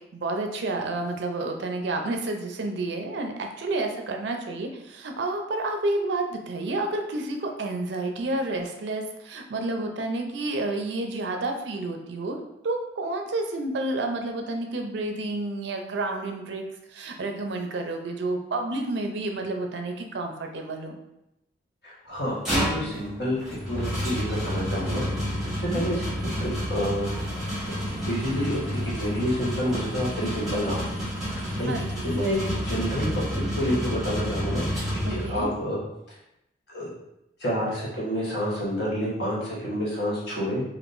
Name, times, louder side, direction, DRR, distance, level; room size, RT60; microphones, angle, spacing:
voice 1, 0.1-12.4 12.6-16.6 16.9-21.0 25.5-25.8 31.7-32.0 35.0-35.5, right 2 dB, 65° right, 3 dB, 0.4 m, -30 dB
voice 2, 21.8-23.4 23.7-25.1 25.6-27.1 27.9-30.8 31.3-31.7 32.0-34.7 35.1-35.8 36.7-36.9 37.4-40.6, equal, 55° left, -6 dB, 1.0 m, -29 dB
sound 1, 22.1-35.6, equal, 5° right, 1.2 m, -30 dB
3.5 x 2.5 x 2.5 m, 0.84 s
head